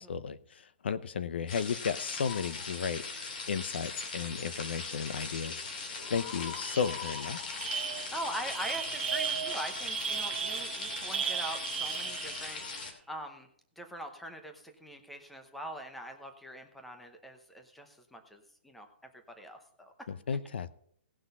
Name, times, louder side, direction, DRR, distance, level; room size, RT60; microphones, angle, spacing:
voice 1, 0.0-7.6 20.1-20.7, left 6 dB, 65° left, 15 dB, 0.7 m, -34 dB
sound 1, 1.5-12.9, left 4 dB, 45° left, 2.7 m, -40 dB
sound 2, 2.1-2.7 6.0-8.8, left 13 dB, 20° left, 0.5 m, -46 dB
sound 3, 5.8-6.0 6.3-12.7, right 7 dB, 65° right, 1.3 m, -36 dB
voice 2, 8.1-13.5 13.8-18.9 19.3-20.1, equal, ahead, 5 dB, 0.8 m, -42 dB
18.0 x 6.2 x 5.5 m, 0.65 s
hypercardioid pair, 170°, 6 cm